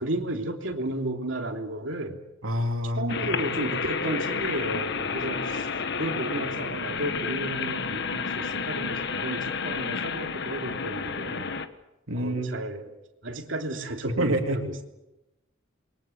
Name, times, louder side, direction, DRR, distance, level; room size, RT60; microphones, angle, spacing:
voice 1, 0.0-2.2 2.9-5.7 6.0-11.5 12.1-12.9 13.2-14.8, right 1 dB, 65° right, 3 dB, 3.2 m, -33 dB
voice 2, 2.4-3.3 12.1-12.5 14.0-14.6, equal, 90° right, 3 dB, 3.5 m, -27 dB
sound 1, 3.1-11.7, left 5 dB, 55° left, 1.4 m, -31 dB
28.0 x 23.0 x 7.3 m, 0.94 s
head